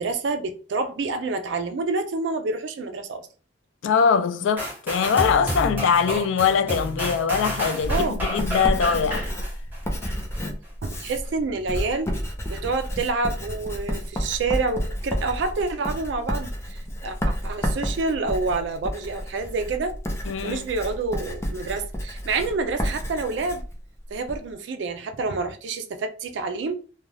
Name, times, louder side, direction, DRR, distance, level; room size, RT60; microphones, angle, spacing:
voice 1, 0.0-3.3 7.9-8.2 10.8-12.1 12.5-19.9 20.4-23.6 24.1-26.8, right 3 dB, 70° right, 0.4 m, -28 dB
voice 2, 3.8-9.3 20.3-20.6, left 6 dB, 85° left, 0.3 m, -22 dB
sound 1, 4.6-10.4 10.9-11.0, equal, 10° right, 0.9 m, -30 dB
Writing, 7.8-24.4, equal, 15° left, 0.4 m, -31 dB
2.4 x 2.2 x 3.1 m
head